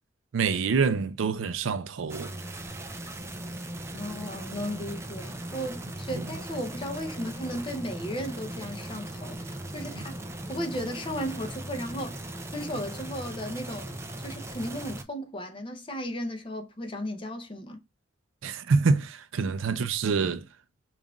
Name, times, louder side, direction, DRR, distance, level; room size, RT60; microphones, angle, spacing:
voice 1, 0.3-2.3 6.1-6.2 18.4-20.4, right 4 dB, 85° right, 0.4 m, -26 dB
sound 1, 2.1-15.0, right 1 dB, 15° right, 0.3 m, -38 dB
voice 2, 3.9-10.2 10.5-17.8, equal, 25° left, 0.6 m, -35 dB
5.3 x 2.5 x 2.3 m
head